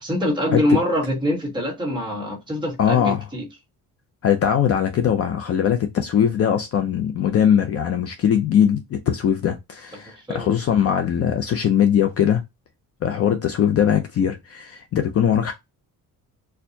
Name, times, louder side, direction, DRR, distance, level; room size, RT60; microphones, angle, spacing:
voice 1, 0.0-3.5 10.2-10.5, left 1 dB, 15° right, 1.3 m, -24 dB
voice 2, 2.8-3.2 4.2-12.4 13.0-15.5, left 9 dB, 45° left, 0.5 m, -20 dB
4.4 x 2.3 x 2.7 m
cardioid pair, 180°, 35 cm